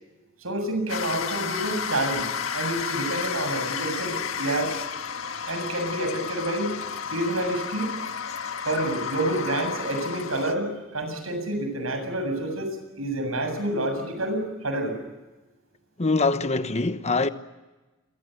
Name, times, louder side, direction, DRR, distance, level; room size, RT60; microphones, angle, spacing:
voice 1, 0.4-4.8 5.4-6.7 7.1-7.9 8.6-15.0, right 1 dB, 90° right, 7.5 m, -28 dB
sound 1, 0.9-10.5, left 7 dB, 80° left, 1.6 m, -32 dB
voice 2, 16.0-17.3, left 3 dB, 35° left, 1.1 m, -23 dB
28.0 x 23.5 x 7.9 m
head